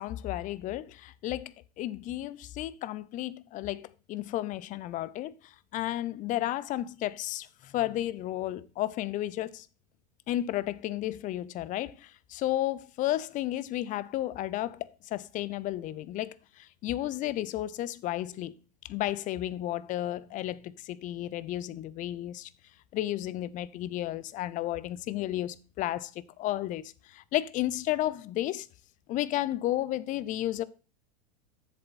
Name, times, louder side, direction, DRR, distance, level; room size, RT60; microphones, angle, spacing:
voice 1, 0.0-9.7 10.3-18.5 18.9-22.5 22.9-28.7 29.1-30.6, left 14 dB, 40° left, 0.6 m, -33 dB
7.7 x 7.1 x 4.2 m
hypercardioid pair, 110°, 21 cm